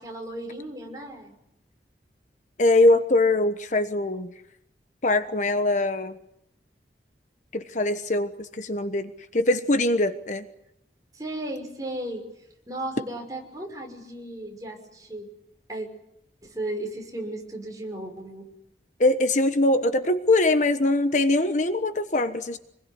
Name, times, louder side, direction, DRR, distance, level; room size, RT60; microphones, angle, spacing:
voice 1, 0.0-1.4 11.1-12.2 12.7-15.3 15.7-15.9 16.4-18.5, right 1 dB, 20° right, 1 dB, 5.9 m, -35 dB
voice 2, 2.6-4.3 5.0-6.2 7.5-10.5 19.0-22.6, left 2 dB, 45° left, 9 dB, 1.2 m, -22 dB
26.5 x 21.0 x 9.7 m, 0.80 s
head